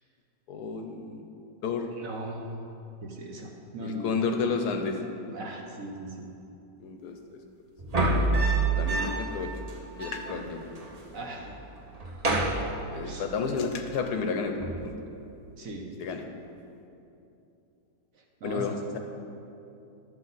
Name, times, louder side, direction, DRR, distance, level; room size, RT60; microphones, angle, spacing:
voice 1, 0.5-1.3 1.6-1.9 3.8-5.0 6.8-7.4 8.5-9.5 10.0-10.6 12.9-14.9 16.0-16.2 18.4-19.0, left 5 dB, 70° left, 5 dB, 1.1 m, -31 dB
voice 2, 2.0-2.5 3.0-4.1 5.3-6.3 11.1-11.5 13.0-13.3 15.6-15.9 18.4-19.0, right 1 dB, 55° right, 1 dB, 1.2 m, -39 dB
sound 1, 7.8-9.4 9.7-9.8 10.0-11.0 11.3-11.6 11.9-13.4 14.6-15.0, right 3 dB, 30° right, 0.8 m, -28 dB
11.5 x 7.4 x 4.0 m, 2.8 s
omnidirectional pair, 1.9 m